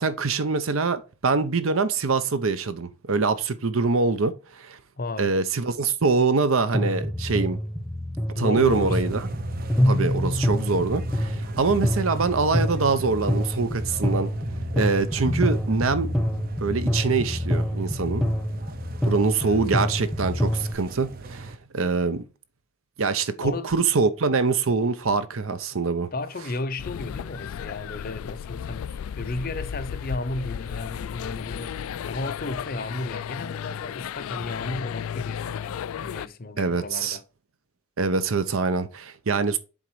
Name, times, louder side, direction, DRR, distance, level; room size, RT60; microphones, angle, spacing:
voice 1, 0.0-4.8 5.2-7.6 8.4-9.2 9.9-14.3 14.7-16.1 16.6-18.2 19.0-22.2 23.0-26.1 36.6-37.2 38.0-39.6, right 4 dB, 80° right, 0.7 m, -24 dB
voice 2, 5.0-5.3 8.3-9.0 19.4-19.6 23.4-23.7 26.1-37.2, left 2 dB, 45° left, 0.6 m, -34 dB
sound 1, 6.7-20.7, equal, ahead, 0.8 m, -26 dB
sound 2, 8.7-21.6, right 3 dB, 45° right, 0.6 m, -38 dB
sound 3, 26.8-36.3, left 8 dB, 85° left, 0.3 m, -34 dB
7.3 x 3.9 x 4.7 m
head